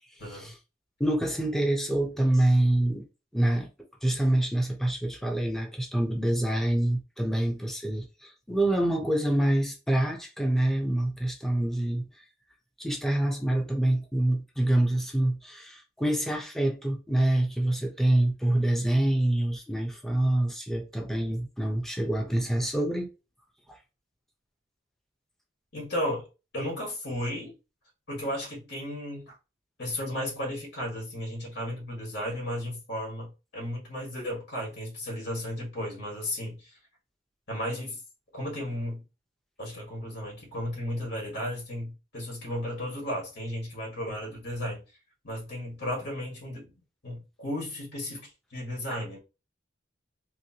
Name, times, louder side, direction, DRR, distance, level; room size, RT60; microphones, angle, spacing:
voice 1, 0.2-0.5 25.7-26.3 26.5-27.5 28.1-29.3 29.8-36.8 37.5-38.0 38.3-39.0 39.6-44.8 45.2-46.7 47.0-49.2, left 1 dB, 65° left, 1.7 m, -34 dB
voice 2, 1.0-3.1 3.3-3.7 4.0-12.1 12.8-23.1, right 1 dB, ahead, 0.7 m, -26 dB
3.2 x 3.1 x 2.8 m
head